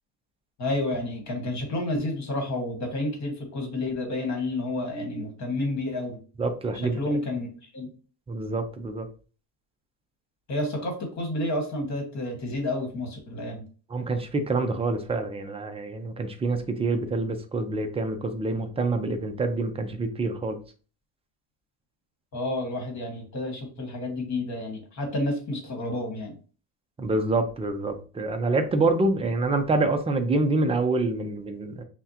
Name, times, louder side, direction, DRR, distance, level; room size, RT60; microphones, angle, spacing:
voice 1, 0.6-6.2 6.7-7.5 7.7-7.9 10.5-13.6 22.3-26.3, left 1 dB, 40° left, 3 dB, 1.5 m, -30 dB
voice 2, 6.4-7.0 8.3-9.1 13.9-20.6 27.0-31.8, right 2 dB, 15° right, 7 dB, 0.3 m, -26 dB
5.7 x 2.2 x 2.8 m, 0.37 s
cardioid pair, 140°, 43 cm